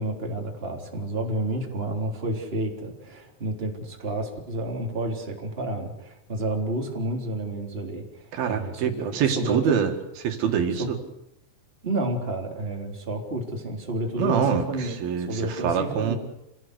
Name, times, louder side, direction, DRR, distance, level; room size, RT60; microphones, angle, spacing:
voice 1, 0.0-8.9 9.3-9.9 10.8-10.9 11.8-15.0 15.3-16.2, right 1 dB, 15° right, 1 dB, 3.5 m, -30 dB
voice 2, 8.3-9.9 10.2-10.8 14.2-16.2, right 7 dB, 80° right, 5 dB, 3.8 m, -25 dB
27.5 x 17.5 x 8.2 m, 0.87 s
omnidirectional pair, 4.2 m